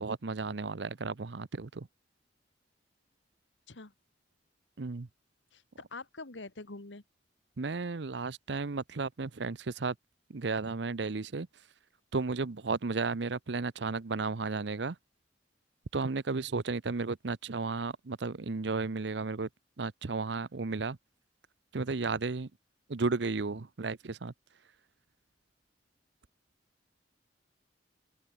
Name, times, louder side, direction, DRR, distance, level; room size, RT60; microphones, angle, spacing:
voice 1, 0.0-1.9 4.8-5.1 7.6-9.9 10.3-11.5 12.1-15.0 15.9-19.5 19.8-21.0 21.7-22.5 22.9-24.3, right 4 dB, 65° right, 0.7 m, -33 dB
voice 2, 5.5-7.0, left 3 dB, 75° left, 1.7 m, -45 dB
open air
head